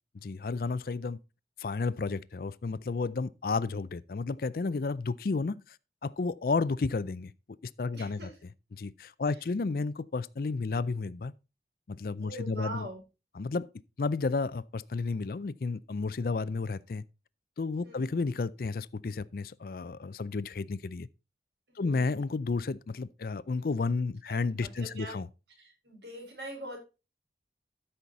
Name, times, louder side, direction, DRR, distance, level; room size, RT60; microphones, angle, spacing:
voice 1, 0.2-1.2 1.6-5.8 6.0-7.3 7.6-8.3 8.7-11.3 11.9-12.9 13.4-13.7 14.0-17.0 17.6-21.1 21.8-25.3, left 4 dB, 55° left, 0.4 m, -32 dB
voice 2, 7.9-8.4 9.3-9.4 12.2-13.0 17.8-18.1 21.8-22.1 24.3-25.2 25.6-26.8, right 1 dB, 75° right, 4.6 m, -43 dB
13.0 x 5.7 x 3.9 m
head